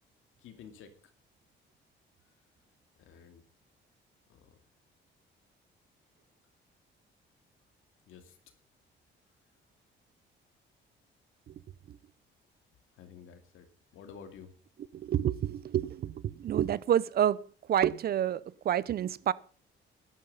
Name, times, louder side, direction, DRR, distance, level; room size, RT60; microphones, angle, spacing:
voice 1, 0.4-0.9 3.0-3.4 4.3-4.6 8.1-8.4 12.9-14.5, left 7 dB, 85° left, 2.4 m, -51 dB
voice 2, 14.9-17.4 17.7-19.3, right 10 dB, 50° right, 0.7 m, -28 dB
12.0 x 12.0 x 5.5 m
cardioid pair, 140°, 20 cm